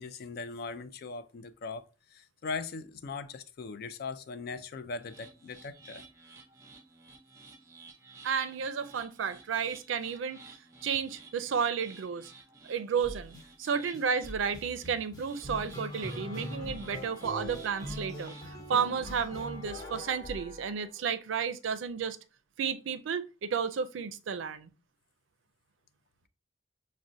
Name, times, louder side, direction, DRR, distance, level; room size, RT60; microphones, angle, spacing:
voice 1, 0.0-1.8 2.1-6.0, left 4 dB, 55° left, 0.4 m, -39 dB
sound 1, 5.0-18.5, right 3 dB, 15° right, 0.5 m, -54 dB
voice 2, 8.2-10.4 10.8-12.3 12.6-22.2 22.6-24.7, right 6 dB, 85° right, 0.4 m, -32 dB
sound 2, 13.0-13.4 13.9-21.1, left 1 dB, 20° left, 0.8 m, -42 dB
6.0 x 2.1 x 2.6 m
head